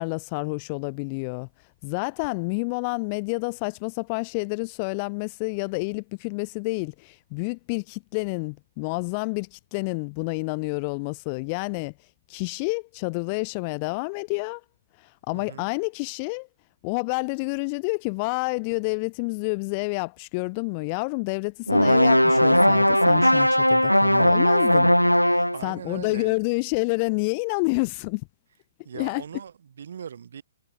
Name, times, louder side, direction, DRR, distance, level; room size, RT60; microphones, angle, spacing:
voice 1, 0.0-1.5 1.8-11.9 12.3-14.6 15.0-16.5 16.8-24.9 25.2-28.2 28.9-29.2, left 32 dB, 30° left, 2.1 m, -29 dB
voice 2, 15.3-15.7 25.5-26.4 28.8-30.4, right 8 dB, 55° right, 7.8 m, -39 dB
sound 1, 21.7-25.7, equal, 90° left, 0.6 m, -18 dB
figure-of-eight pair, 125°, 0 cm